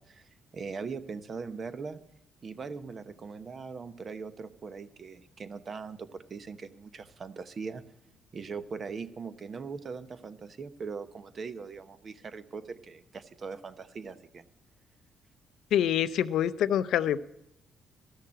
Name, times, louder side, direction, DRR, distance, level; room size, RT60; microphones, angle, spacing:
voice 1, 0.0-2.0 2.4-7.8 8.3-14.5, right 5 dB, 45° right, 12 dB, 1.0 m, -40 dB
voice 2, 15.7-17.2, left 10 dB, 80° left, 15 dB, 0.5 m, -26 dB
13.0 x 6.7 x 7.6 m, 0.83 s
cardioid pair, 90°, 0 cm